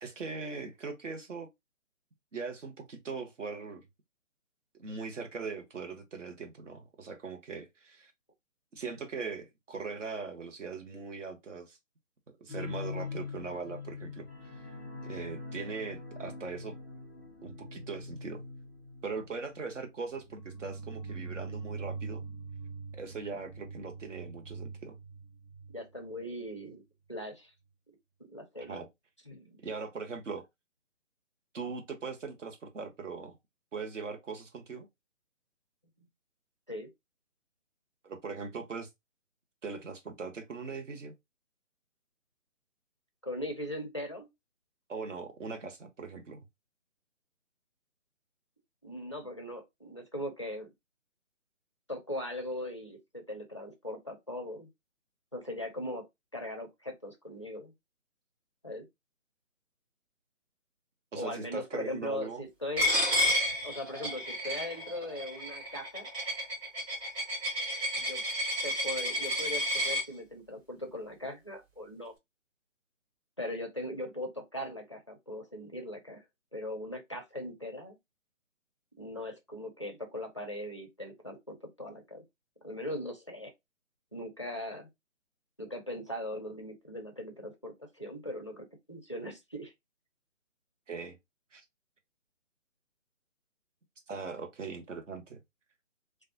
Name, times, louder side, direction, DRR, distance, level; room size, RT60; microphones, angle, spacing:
voice 1, 0.0-1.5 2.3-3.8 4.8-8.1 8.7-11.8 12.4-14.6 15.0-16.7 17.4-18.4 19.0-22.2 22.9-24.9 28.7-28.9 29.6-30.4 31.5-33.4 33.7-34.9 38.0-38.9 39.6-41.1 44.9-46.4 61.1-62.4 90.9-91.2 91.5-91.6 94.1-95.4, right 4 dB, 70° right, 1.1 m, -40 dB
sound 1, 12.5-25.7 26.0-26.2 26.6-26.7, equal, 5° right, 0.9 m, -43 dB
voice 2, 25.7-26.8 27.1-27.5 28.3-28.8 29.3-29.6 36.7-36.9 43.2-44.3 48.8-50.7 51.9-54.7 55.3-56.1 56.3-57.7 58.6-58.9 61.1-62.9 63.6-66.1 68.0-68.2 68.6-72.1 73.4-76.2 76.5-78.0 79.0-82.2 82.6-83.5 84.1-84.9 85.6-89.7, left 1 dB, 25° left, 0.4 m, -39 dB
Coin (dropping), 62.8-70.0, equal, 25° right, 2.0 m, -31 dB
3.3 x 2.3 x 2.6 m
figure-of-eight pair, 155°, 39 cm